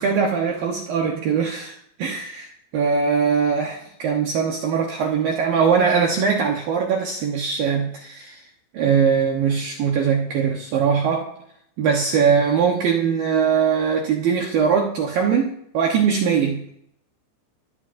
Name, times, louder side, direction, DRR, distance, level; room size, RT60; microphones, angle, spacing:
voice 1, 0.0-8.4 8.7-11.3 11.8-16.8, right 6 dB, 85° right, 1 dB, 2.0 m, -21 dB
24.0 x 15.5 x 2.7 m, 0.71 s
omnidirectional pair, 5.9 m